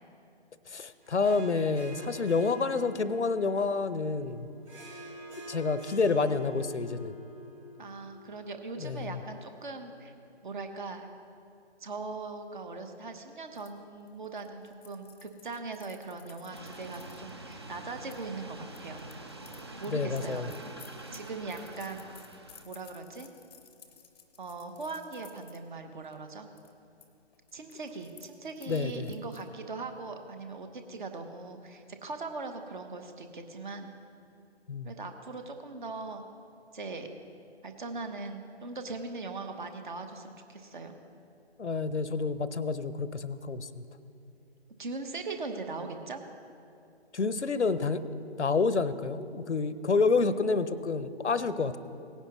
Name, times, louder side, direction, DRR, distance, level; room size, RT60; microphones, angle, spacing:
voice 1, 0.7-4.5 5.5-7.1 8.8-9.2 19.9-20.5 28.7-29.1 34.7-34.9 41.6-43.8 47.1-48.0 48.4-51.8, left 4 dB, 85° left, 14 dB, 0.7 m, -28 dB
Harp, 1.0-9.7, equal, 70° right, 3.1 m, -48 dB
voice 2, 7.8-10.1 10.4-11.1 11.8-19.1 19.8-20.5 21.1-22.1 22.6-23.3 24.4-26.5 27.5-33.9 34.8-36.2 36.7-37.1 37.6-41.0 44.8-46.2, right 3 dB, 45° right, 6 dB, 1.1 m, -40 dB
sound 1, 13.6-18.2 18.7-25.6 26.0-26.3 26.6-27.1 27.3-29.5, left 7 dB, 20° left, 0.6 m, -56 dB
sound 2, 16.5-22.6, right 2 dB, 25° right, 0.5 m, -46 dB
17.5 x 10.0 x 3.0 m, 2.6 s
figure-of-eight pair, 145°, 34 cm